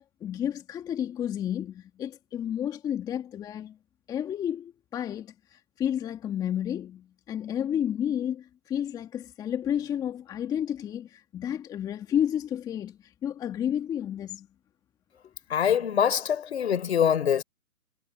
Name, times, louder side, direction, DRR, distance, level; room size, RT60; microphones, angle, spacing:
voice 1, 0.0-3.8 4.1-14.5, left 10 dB, 10° left, 1.9 m, -31 dB
voice 2, 15.5-17.4, left 8 dB, 45° left, 4.6 m, -24 dB
figure-of-eight pair, 150°, 45 cm